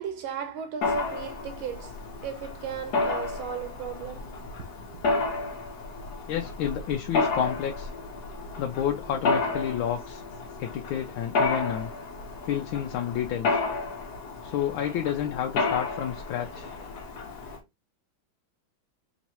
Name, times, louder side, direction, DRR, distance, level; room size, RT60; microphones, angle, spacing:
voice 1, 0.0-5.1, right 7 dB, 85° right, 1.6 m, -37 dB
Mechanisms, 0.8-17.6, left 3 dB, 60° left, 1.3 m, -31 dB
voice 2, 6.3-7.9 8.6-10.2 10.6-11.9 12.4-13.6 14.4-16.7, left 10 dB, 80° left, 1.3 m, -30 dB
4.4 x 3.0 x 2.9 m
omnidirectional pair, 2.2 m